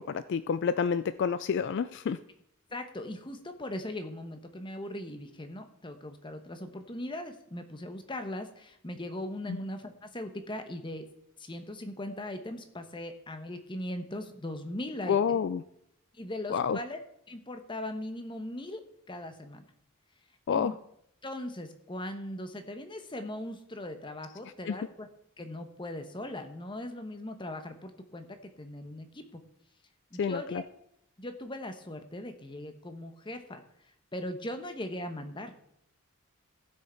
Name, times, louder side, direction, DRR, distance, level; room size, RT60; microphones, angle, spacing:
voice 1, 0.0-2.2 9.5-9.6 15.1-15.6 16.5-16.8 20.5-20.7 24.7-24.8 30.2-30.6, left 6 dB, 55° left, 14 dB, 0.3 m, -29 dB
voice 2, 2.7-11.0 11.4-15.4 16.1-17.0 17.3-18.8 19.1-19.6 20.5-20.8 21.2-25.1 25.4-29.4 30.1-30.6 31.2-33.6 34.1-35.5, left 1 dB, 20° left, 7 dB, 1.0 m, -39 dB
15.0 x 6.3 x 4.4 m, 0.76 s
head